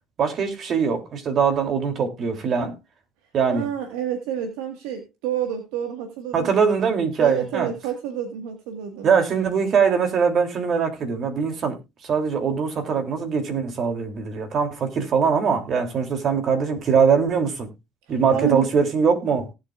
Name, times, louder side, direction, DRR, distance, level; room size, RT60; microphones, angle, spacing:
voice 1, 0.2-2.8 3.3-3.7 6.3-7.7 9.0-11.8 12.0-17.7 18.1-19.5, right 6 dB, 55° right, 3.2 m, -22 dB
voice 2, 3.5-6.9 7.2-9.1 18.1-18.7, right 10 dB, 85° right, 1.8 m, -29 dB
18.0 x 8.3 x 2.5 m
supercardioid pair, 85°, 0 cm